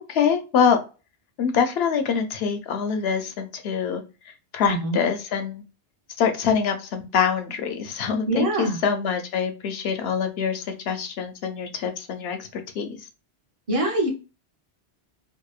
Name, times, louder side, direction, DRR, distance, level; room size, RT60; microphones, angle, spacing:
voice 1, 0.1-0.8 1.4-4.0 4.5-5.6 6.2-13.1, left 6 dB, 70° left, 6 dB, 0.8 m, -25 dB
voice 2, 4.6-5.0 8.3-8.8 13.7-14.1, right 2 dB, 35° right, 0 dB, 0.8 m, -24 dB
2.8 x 2.0 x 2.3 m, 0.32 s
omnidirectional pair, 1.1 m